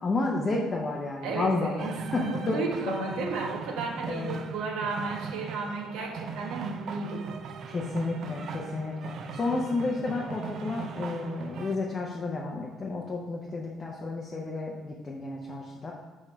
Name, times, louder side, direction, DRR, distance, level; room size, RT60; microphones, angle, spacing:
voice 1, 0.0-1.8 2.1-3.0 4.1-4.4 7.7-15.9, left 3 dB, 20° left, -2 dB, 0.6 m, -31 dB
voice 2, 1.2-7.2, right 3 dB, 85° right, 0 dB, 1.1 m, -33 dB
sound 1, 1.8-11.8, right 6 dB, 45° right, 0.4 m, -39 dB
5.0 x 4.8 x 5.6 m, 1.3 s
cardioid pair, 175°, 0 cm